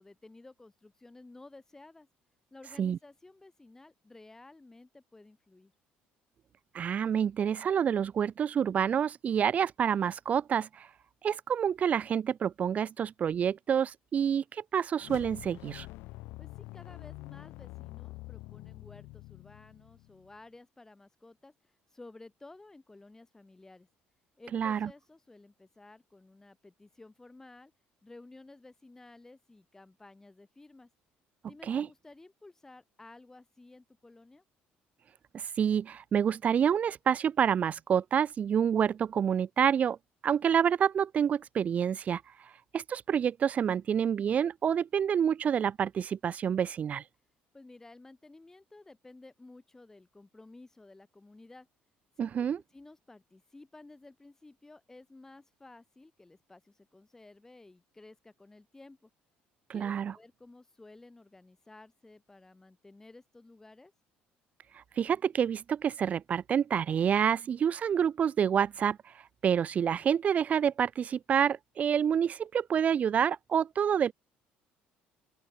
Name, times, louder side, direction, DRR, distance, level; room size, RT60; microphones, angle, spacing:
voice 1, 0.0-2.1 2.5-5.7 16.4-23.9 24.4-27.7 28.0-30.9 31.5-34.4 47.5-51.7 52.2-52.3 52.7-59.1 59.7-63.9, left 2 dB, 15° left, 6.1 m, -54 dB
voice 2, 6.7-10.9 11.2-15.9 24.5-24.9 31.7-31.9 35.3-40.0 40.2-42.2 42.7-47.0 52.2-52.6 59.7-60.1 64.7-69.0 69.4-74.1, right 8 dB, 40° right, 0.9 m, -28 dB
sound 1, 15.0-20.4, left 21 dB, 85° left, 0.8 m, -46 dB
open air
cardioid pair, 110°, 4 cm